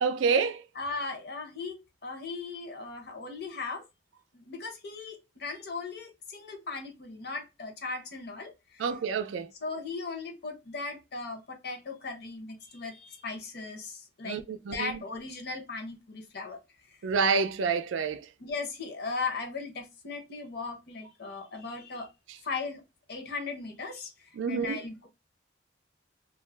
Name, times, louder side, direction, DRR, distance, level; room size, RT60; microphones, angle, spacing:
voice 1, 0.0-0.6 8.8-9.5 14.2-15.0 17.0-18.3 24.4-24.8, right 5 dB, 85° right, 0.4 m, -28 dB
voice 2, 0.8-3.8 4.3-8.9 9.6-14.4 14.7-16.6 16.9-17.0 18.4-22.1 22.4-22.8 23.1-25.1, left 4 dB, 55° left, 0.7 m, -38 dB
2.4 x 2.0 x 3.2 m
head